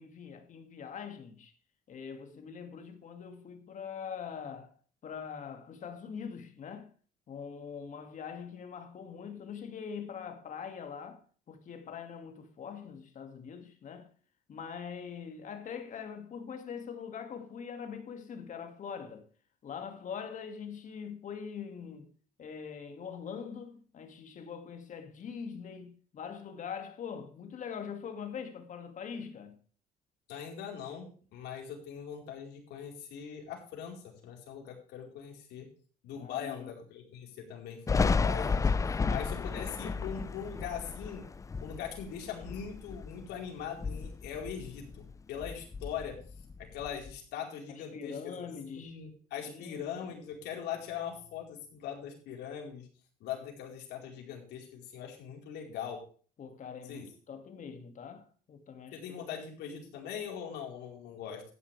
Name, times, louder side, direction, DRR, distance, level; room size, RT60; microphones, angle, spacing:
voice 1, 0.0-1.5 1.9-4.8 5.0-6.9 7.3-14.1 14.5-19.3 19.6-22.1 22.4-29.6 36.2-36.7 47.7-49.0 49.5-50.1 56.4-59.2, left 7 dB, 50° left, 2.4 m, -43 dB
voice 2, 30.3-35.7 36.0-41.3 41.6-46.2 46.6-48.4 48.7-52.9 53.2-56.0 56.9-57.1 58.9-61.4, left 8 dB, 80° left, 4.6 m, -41 dB
Thunder, 37.9-43.3 43.7-45.1 45.4-47.1, left 4 dB, 20° left, 0.4 m, -32 dB
13.5 x 10.0 x 3.5 m
cardioid pair, 110°, 17 cm